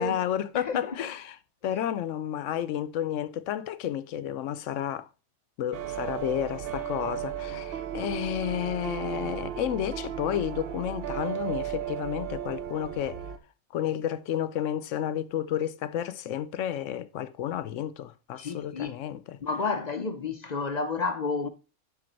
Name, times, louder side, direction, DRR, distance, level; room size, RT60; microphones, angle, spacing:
voice 1, 0.0-1.4 1.6-5.1 5.6-13.2 13.7-19.4, left 10 dB, 85° left, 1.0 m, -31 dB
voice 2, 0.5-1.1 18.4-19.0 19.4-21.5, left 4 dB, 45° left, 0.6 m, -31 dB
sound 1, 5.7-13.4, right 10 dB, 60° right, 0.8 m, -35 dB
7.6 x 5.7 x 3.9 m
omnidirectional pair, 1.3 m